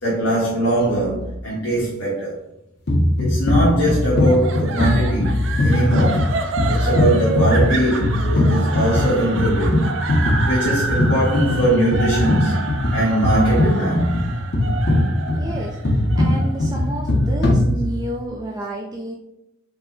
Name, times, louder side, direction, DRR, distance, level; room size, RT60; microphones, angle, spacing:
voice 1, 0.0-2.4 3.2-6.3 6.7-9.8 10.4-12.5 12.9-14.2, right 1 dB, 85° left, 1.4 m, -21 dB
sound 1, 2.9-18.2, left 1 dB, 55° left, 0.8 m, -20 dB
sound 2, 4.2-17.4, right 3 dB, 80° right, 0.5 m, -29 dB
voice 2, 15.3-19.1, right 1 dB, 20° right, 0.4 m, -30 dB
4.7 x 2.2 x 3.8 m
head